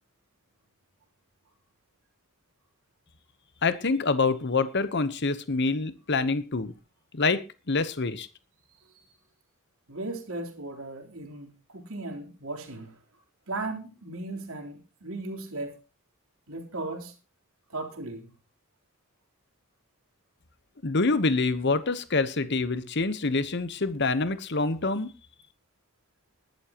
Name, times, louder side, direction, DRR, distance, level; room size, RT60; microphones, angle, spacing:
voice 1, 3.6-6.7 7.1-7.4 7.7-8.3 20.8-25.1, left 3 dB, 50° left, 1.1 m, -26 dB
voice 2, 9.9-13.0 13.5-15.8 16.5-17.1 17.7-18.3, right 2 dB, 75° right, 3.7 m, -37 dB
20.5 x 12.0 x 3.0 m
head